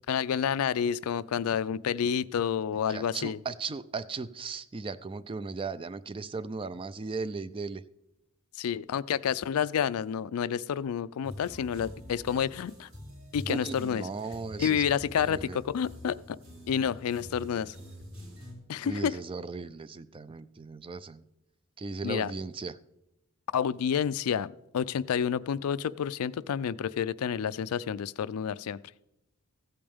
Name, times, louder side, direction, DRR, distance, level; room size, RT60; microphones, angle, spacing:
voice 1, 0.1-3.4 8.6-12.9 13.3-14.0 14.6-16.4 16.7-17.8 18.7-19.2 22.0-22.3 23.5-28.8, left 8 dB, 85° left, 17 dB, 0.4 m, -29 dB
voice 2, 2.9-7.8 13.5-14.8 15.2-15.6 18.8-21.2 21.8-22.8, right 4 dB, 25° right, 15 dB, 0.4 m, -37 dB
sound 1, 11.2-18.5, equal, 65° right, 3.4 m, -46 dB
15.0 x 8.7 x 3.5 m, 0.88 s
head